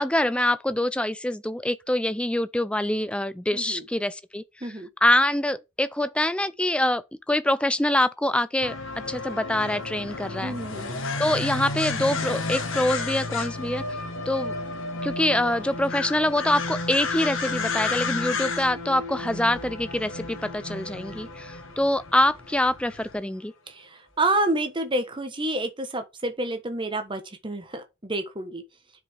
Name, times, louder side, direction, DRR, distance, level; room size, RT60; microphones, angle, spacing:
voice 1, 0.0-4.7 5.0-8.8 9.1-10.5 11.2-13.8 14.3-14.5 15.0-23.5, left 1 dB, 5° left, 0.4 m, -25 dB
voice 2, 3.5-3.8 4.6-4.9 10.4-11.0 23.7-28.6, right 2 dB, 25° right, 1.2 m, -29 dB
sound 1, 8.6-23.2, left 3 dB, 70° left, 1.5 m, -32 dB
9.3 x 5.1 x 3.5 m
head